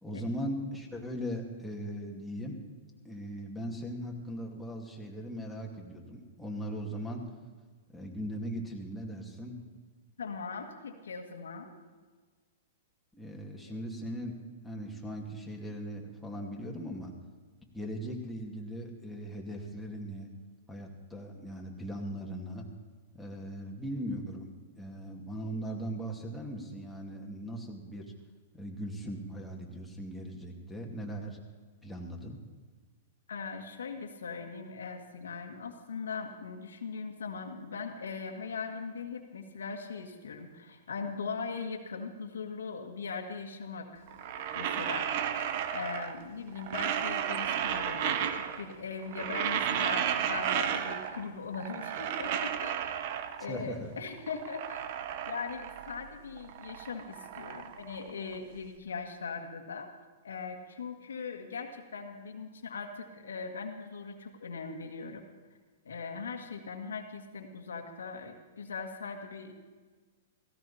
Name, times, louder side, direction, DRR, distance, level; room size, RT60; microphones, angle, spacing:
voice 1, 0.0-2.6 3.0-7.3 7.9-9.6 13.1-17.1 17.7-20.3 20.7-22.7 23.1-28.1 28.5-31.4 31.8-32.4 53.5-53.9, equal, ahead, -2 dB, 2.5 m, -39 dB
voice 2, 10.2-11.7 33.3-44.1 44.5-45.1 45.7-52.8 53.4-54.9 55.3-59.9 60.2-65.2 65.9-69.5, left 5 dB, 90° left, 4 dB, 1.8 m, -40 dB
sound 1, 44.1-46.3 46.5-48.7 49.0-51.3 51.5-53.6 54.1-56.1 56.4-58.6, right 9 dB, 55° right, 1.1 m, -33 dB
17.0 x 16.0 x 4.3 m, 1.4 s
hypercardioid pair, 130°, 0 cm